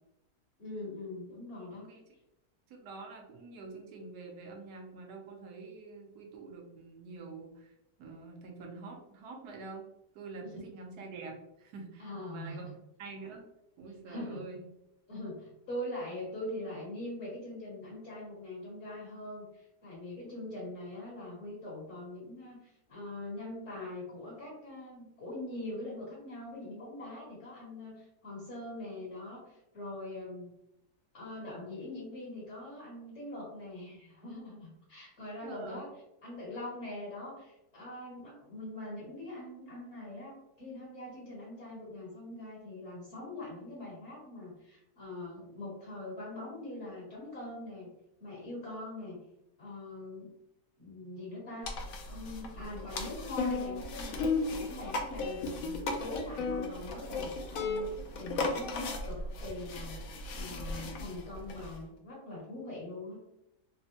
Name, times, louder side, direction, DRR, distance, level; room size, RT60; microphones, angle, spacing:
voice 1, 0.6-1.9 10.4-10.5 12.0-12.7 14.1-14.5 15.1-30.5 31.1-35.9 36.2-47.9 48.2-49.2 49.6-50.3 50.8-51.7 52.0-63.2, left 1 dB, 50° left, -5 dB, 1.2 m, -43 dB
voice 2, 2.7-7.7 8.0-9.9 10.1-12.7 13.0-13.4 13.8-14.6 35.4-35.8 38.2-38.4, right 3 dB, 80° right, 1 dB, 1.2 m, -46 dB
sound 1, 51.6-61.8, left 3 dB, 70° left, 0.9 m, -36 dB
3.4 x 2.1 x 2.7 m, 0.86 s
omnidirectional pair, 1.7 m